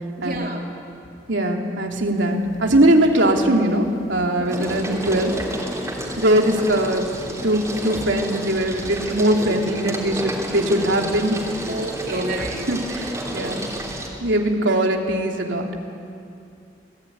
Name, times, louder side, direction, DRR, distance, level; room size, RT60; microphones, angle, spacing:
voice 1, 0.2-0.7 4.6-4.7 11.7-12.7, right 2 dB, 50° right, 0 dB, 3.6 m, -31 dB
voice 2, 1.3-5.4 6.2-11.7 12.1-12.4 12.7-13.6 14.2-15.7, right 1 dB, 80° right, 1 dB, 3.0 m, -21 dB
sound 1, 2.1-2.6 3.0-14.1, right 1 dB, 15° right, 3.4 m, -31 dB
27.5 x 19.0 x 9.4 m, 2.6 s
head